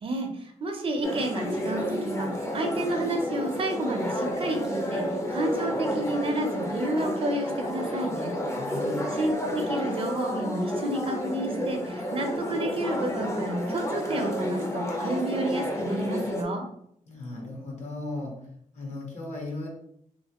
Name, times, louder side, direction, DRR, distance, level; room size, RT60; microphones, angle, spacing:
voice 1, 0.0-8.3 9.1-16.6, right 1 dB, 45° right, 4 dB, 0.5 m, -30 dB
sound 1, 1.0-16.4, equal, 20° left, 0.6 m, -31 dB
voice 2, 8.6-9.0 17.1-18.3 18.7-19.7, left 2 dB, 60° left, -1 dB, 1.2 m, -36 dB
3.1 x 2.7 x 2.8 m, 0.70 s
wide cardioid pair, 135°, 14 cm